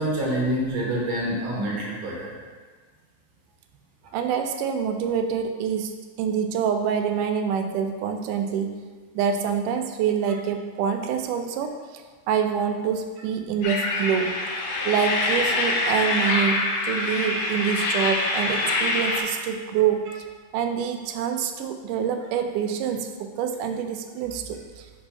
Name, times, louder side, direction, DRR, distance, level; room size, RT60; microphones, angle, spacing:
voice 1, 0.0-2.3, right 1 dB, 50° right, -4 dB, 1.7 m, -26 dB
voice 2, 4.1-5.9 6.2-8.8 9.2-14.4 14.9-20.2 20.5-24.9, right 7 dB, 90° right, 7 dB, 2.1 m, -26 dB
sound 1, 13.6-19.2, left 2 dB, 70° left, 1.9 m, -25 dB
5.4 x 4.0 x 5.7 m, 1.5 s
omnidirectional pair, 3.6 m